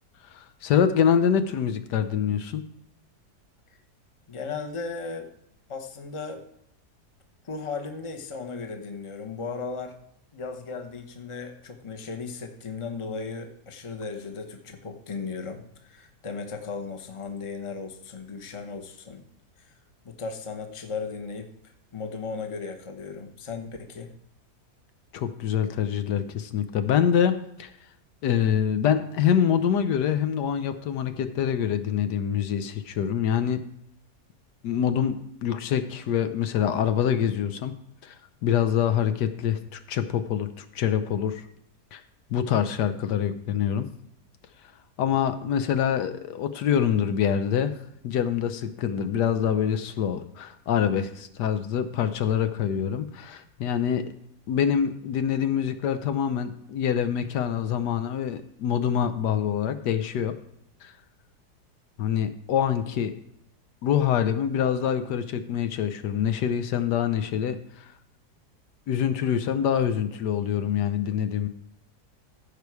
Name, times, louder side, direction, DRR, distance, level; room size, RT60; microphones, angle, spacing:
voice 1, 0.3-2.6 25.1-27.7 28.2-33.6 34.6-37.7 38.0-38.1 38.4-41.4 41.9-42.0 42.3-43.9 45.0-47.7 48.0-54.0 54.5-60.3 60.8-60.9 62.0-63.1 63.8-67.9 68.9-71.5, left 8 dB, 80° left, 10 dB, 1.4 m, -25 dB
voice 2, 4.3-5.3 5.7-6.4 7.4-9.9 10.3-19.2 19.6-19.7 20.0-21.5 21.9-24.1, left 4 dB, 25° left, 4 dB, 0.8 m, -36 dB
15.0 x 5.1 x 4.7 m, 0.75 s
omnidirectional pair, 1.8 m